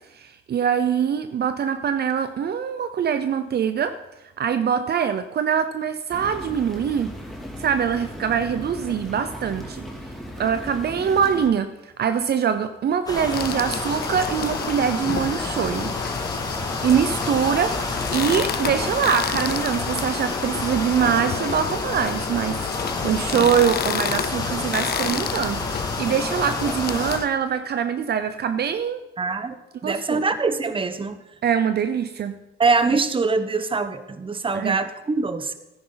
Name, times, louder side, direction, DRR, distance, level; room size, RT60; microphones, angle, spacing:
voice 1, 0.1-3.9 4.4-7.1 7.6-9.8 10.4-15.9 16.5-29.0 29.8-30.2 31.4-32.4 34.5-34.8, right 7 dB, 55° right, 10 dB, 0.7 m, -23 dB
sound 1, 6.1-11.5, equal, ahead, 2.6 m, -37 dB
sound 2, 13.1-27.2, left 2 dB, 20° left, 2.2 m, -29 dB
sound 3, 13.3-27.3, left 8 dB, 50° left, 0.7 m, -31 dB
voice 2, 29.2-31.2 32.6-35.5, right 4 dB, 25° right, 11 dB, 1.0 m, -24 dB
14.0 x 10.0 x 4.0 m, 0.98 s
cardioid pair, 90°, 20 cm